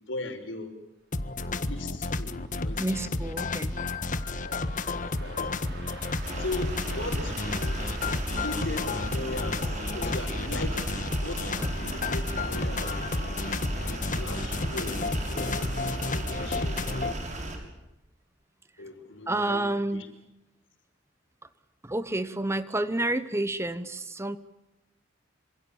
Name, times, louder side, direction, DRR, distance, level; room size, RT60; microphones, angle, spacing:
voice 1, 0.1-0.7 1.6-3.0 3.4-3.5 4.4-4.6 5.2-5.6 6.4-7.9 8.3-12.9 13.9-15.0 15.3-15.6 16.1-16.8 18.8-20.1, left 2 dB, 65° left, 7 dB, 5.5 m, -38 dB
sound 1, 1.1-17.1, left 3 dB, 40° left, 1.6 m, -31 dB
sound 2, 1.5-12.5 12.8-13.1, right 2 dB, 55° right, 6.4 m, -48 dB
voice 2, 2.8-3.7 11.6-11.7 19.3-20.1 21.8-24.4, right 1 dB, 15° right, 13 dB, 1.1 m, -29 dB
sound 3, 6.2-17.6, right 1 dB, 40° right, 6.6 m, -35 dB
27.0 x 26.5 x 7.2 m, 0.93 s
head